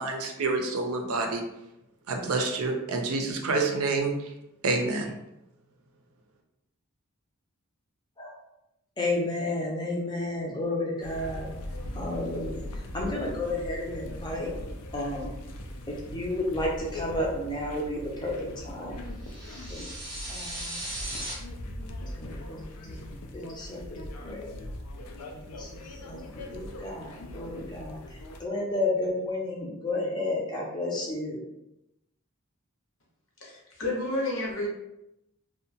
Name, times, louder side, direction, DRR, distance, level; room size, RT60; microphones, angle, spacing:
voice 1, 0.0-1.4 2.1-4.3 4.6-5.1, right 3 dB, 80° right, 3 dB, 0.5 m, -28 dB
voice 2, 9.0-11.5 11.9-12.6 12.9-14.5 14.9-15.3 15.9-19.0 19.7-19.8 20.3-20.8 22.2-23.0 23.3-24.6 25.3-28.0 28.4-31.4, left 2 dB, 20° left, -2 dB, 0.5 m, -32 dB
sound 1, 11.0-28.4, left 1 dB, 90° left, 0.4 m, -40 dB
sound 2, 19.2-21.3, right 1 dB, 20° right, 0.6 m, -37 dB
voice 3, 33.4-34.7, left 2 dB, 65° left, -3 dB, 0.8 m, -30 dB
2.7 x 2.1 x 2.7 m, 0.88 s
head